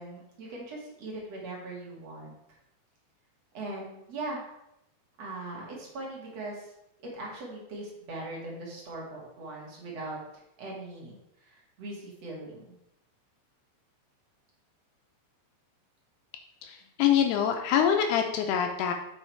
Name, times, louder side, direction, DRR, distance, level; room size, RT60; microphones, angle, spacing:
voice 1, 0.0-2.6 3.5-4.5 5.2-6.7 7.0-10.2 10.6-12.7, right 2 dB, 45° right, -3 dB, 2.7 m, -40 dB
voice 2, 16.6-18.9, left 8 dB, 75° left, 4 dB, 2.6 m, -25 dB
7.9 x 6.5 x 4.5 m, 0.84 s
omnidirectional pair, 5.0 m